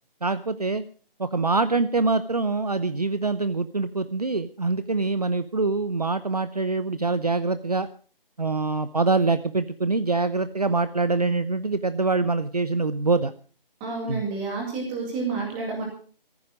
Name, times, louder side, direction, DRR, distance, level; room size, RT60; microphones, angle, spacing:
voice 1, 0.2-0.8 1.2-7.9 8.4-13.3 14.1-14.2, right 3 dB, 45° right, 13 dB, 0.7 m, -24 dB
voice 2, 13.8-15.8, right 3 dB, 5° right, -1 dB, 2.1 m, -29 dB
16.5 x 14.5 x 4.9 m, 0.41 s
figure-of-eight pair, 170°, 29 cm